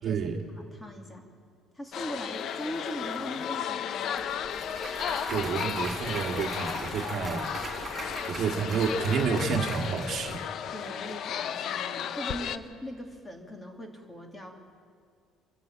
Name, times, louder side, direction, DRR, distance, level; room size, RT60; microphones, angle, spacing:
voice 1, 0.0-0.4 5.3-7.5 8.3-10.4, right 6 dB, 45° right, 3 dB, 1.9 m, -29 dB
voice 2, 0.6-1.2 1.8-4.4 10.7-14.5, equal, 15° left, 2 dB, 2.9 m, -40 dB
sound 1, 1.9-12.6, left 9 dB, 50° left, 0.7 m, -34 dB
Clapping / Cheering / Applause, 4.2-10.4, right 2 dB, 15° right, 4.9 m, -40 dB
28.0 x 11.5 x 9.0 m, 2.1 s
cardioid pair, 135°, 0 cm